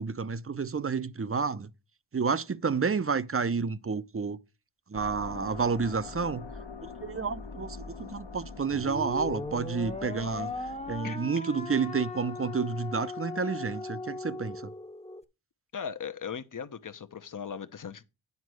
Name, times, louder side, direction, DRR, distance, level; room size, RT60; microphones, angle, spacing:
voice 1, 0.0-1.7 2.1-4.4 4.9-6.5 6.8-10.5 10.9-14.7, right 5 dB, 30° right, 0.7 m, -30 dB
sound 1, 4.9-11.0, left 4 dB, 60° left, 1.5 m, -43 dB
sound 2, 8.7-15.2, left 3 dB, 15° left, 1.0 m, -38 dB
voice 2, 15.7-18.0, left 7 dB, 40° left, 1.0 m, -38 dB
9.6 x 4.2 x 6.3 m
supercardioid pair, 40°, 48 cm